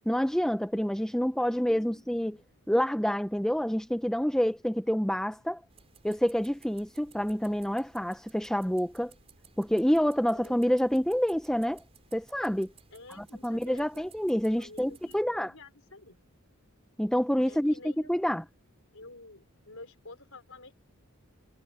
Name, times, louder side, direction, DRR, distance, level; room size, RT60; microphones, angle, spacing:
voice 1, 0.1-2.4 2.7-5.6 6.0-9.1 9.6-11.8 12.1-12.7 13.4-15.5 17.0-18.4, equal, 5° left, 0.6 m, -27 dB
voice 2, 1.4-2.4 10.3-10.9 12.9-14.1 14.6-16.2 17.4-18.4 18.9-20.7, left 2 dB, 65° left, 4.9 m, -51 dB
sound 1, 5.7-15.2, right 5 dB, 30° right, 5.6 m, -59 dB
head